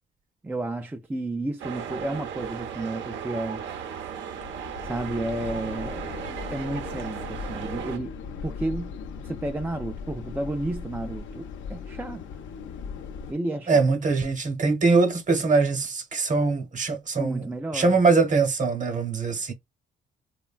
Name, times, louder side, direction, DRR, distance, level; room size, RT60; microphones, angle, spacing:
voice 1, 0.4-3.6 4.8-8.1 8.4-12.3 13.3-13.8 17.2-18.0, right 2 dB, 10° right, 0.3 m, -32 dB
sound 1, 1.6-8.0, right 8 dB, 70° right, 0.6 m, -36 dB
sound 2, 4.4-13.3, left 6 dB, 75° left, 0.5 m, -38 dB
voice 2, 13.7-19.5, right 4 dB, 40° right, 0.9 m, -22 dB
3.0 x 2.2 x 2.3 m
cardioid pair, 90°, 20 cm